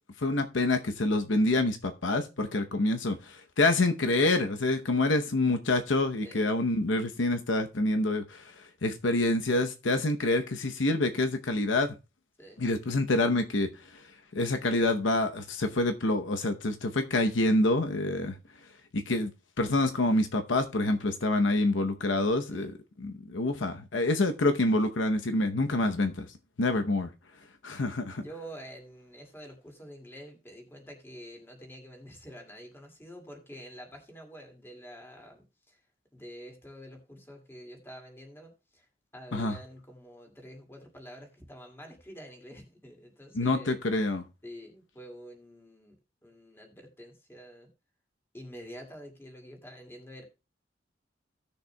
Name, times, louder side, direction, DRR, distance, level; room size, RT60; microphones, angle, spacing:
voice 1, 0.2-11.9 12.6-14.0 14.3-18.3 18.9-19.3 19.6-22.7 23.0-26.3 26.6-27.1 27.6-28.2 39.3-39.6 43.3-44.2, left 2 dB, 80° left, 0.8 m, -27 dB
voice 2, 28.1-35.8 36.1-38.9 39.1-43.8 44.4-45.9 46.2-47.7 48.3-50.2, equal, 15° left, 2.2 m, -47 dB
17.0 x 6.6 x 2.2 m
head